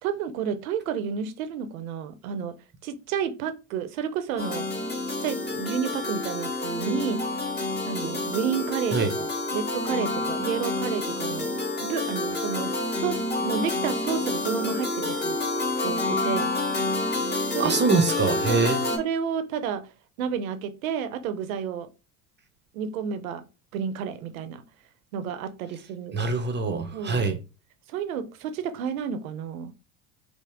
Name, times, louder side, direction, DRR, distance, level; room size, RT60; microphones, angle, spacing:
voice 1, 0.0-2.5 2.8-4.7 5.2-7.2 7.9-15.4 15.8-16.5 17.5-17.9 18.4-18.7 19.0-19.8 20.2-21.9 22.7-23.4 23.7-24.6 25.1-26.2 26.9-27.2 27.9-29.7, right 7 dB, 85° right, 0.7 m, -31 dB
sound 1, 4.4-19.0, left 2 dB, 25° left, 1.5 m, -28 dB
voice 2, 17.6-18.8 26.1-27.4, right 4 dB, 25° right, 0.6 m, -24 dB
5.2 x 2.0 x 3.5 m
hypercardioid pair, 80°, 40 cm